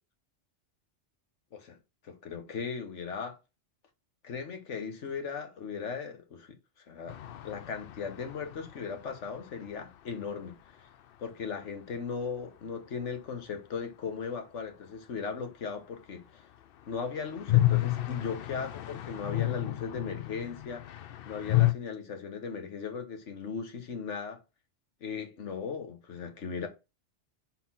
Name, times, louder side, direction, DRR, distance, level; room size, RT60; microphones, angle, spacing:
voice 1, 2.0-3.4 4.2-6.6 6.9-10.9 11.2-16.4 16.9-24.4 25.0-26.7, left 5 dB, 80° left, 1.5 m, -38 dB
sound 1, 7.1-10.9 11.1-11.2 11.4-11.5 16.5-21.7, left 16 dB, 60° left, 0.7 m, -31 dB
4.1 x 4.1 x 5.6 m
omnidirectional pair, 1.2 m